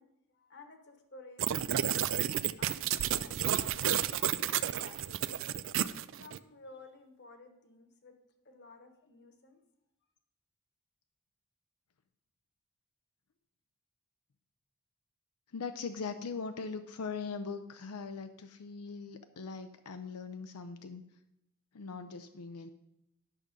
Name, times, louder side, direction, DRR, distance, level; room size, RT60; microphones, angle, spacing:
voice 1, 0.0-1.9 2.1-2.3 2.6-5.2 6.2-8.1 8.4-9.6, left 3 dB, 50° left, 6 dB, 1.2 m, -55 dB
sound 1, 1.4-6.4, right 10 dB, 60° right, 0.4 m, -31 dB
voice 2, 15.5-21.0 21.7-22.7, left 5 dB, 90° left, 8 dB, 0.5 m, -40 dB
11.0 x 6.1 x 5.2 m, 0.85 s
head